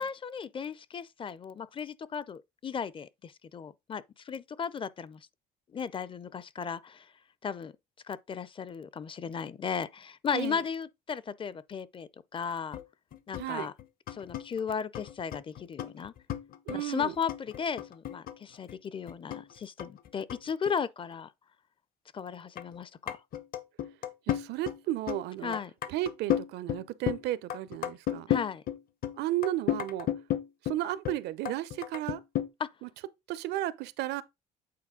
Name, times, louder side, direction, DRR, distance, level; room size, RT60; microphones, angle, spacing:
voice 1, 0.0-5.3 5.7-7.1 7.4-7.7 8.1-12.8 13.3-13.7 14.1-16.1 16.7-21.3 22.1-23.2 25.4-25.7 28.3-28.6 32.6-32.7, left 7 dB, 30° left, 0.5 m, -35 dB
sound 1, 12.7-12.8 13.1-18.8 19.1-20.8 22.6-22.8 23.1-24.8 25.1-25.2 25.5-27.2 27.5-31.2 31.4-32.5, left 11 dB, 60° left, 1.0 m, -33 dB
voice 2, 13.4-13.7 16.7-17.2 24.3-25.6 25.9-28.3 29.2-30.1 30.6-32.2 32.8-32.9 33.3-34.2, right 14 dB, 80° right, 0.6 m, -33 dB
8.5 x 4.1 x 3.7 m
cardioid pair, 110°, 17 cm